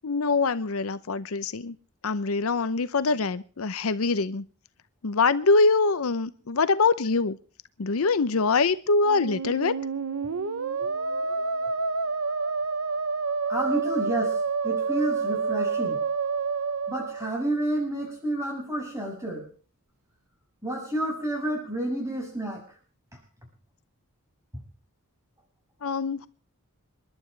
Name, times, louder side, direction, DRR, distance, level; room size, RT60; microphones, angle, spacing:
voice 1, 0.0-1.8 2.0-4.4 5.0-7.4 7.8-9.7 25.8-26.3, left 4 dB, 70° left, 14 dB, 0.7 m, -24 dB
Musical instrument, 9.0-17.8, right 4 dB, 75° right, 0.8 m, -28 dB
voice 2, 13.5-16.0 16.9-19.5 20.6-22.7, right 1 dB, 15° right, 1 dB, 6.3 m, -30 dB
27.5 x 11.5 x 3.3 m, 0.39 s
head